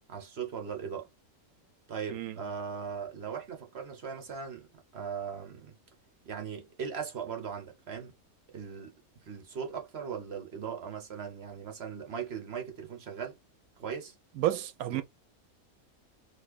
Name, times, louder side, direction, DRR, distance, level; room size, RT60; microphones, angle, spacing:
voice 1, 0.1-1.1 1.9-5.8 6.2-8.1 8.5-8.9 9.2-13.4 13.8-14.1 14.9-15.0, right 6 dB, 50° right, 1.2 m, -39 dB
voice 2, 14.4-15.0, right 13 dB, 90° right, 1.1 m, -30 dB
4.2 x 2.6 x 2.5 m
omnidirectional pair, 1.5 m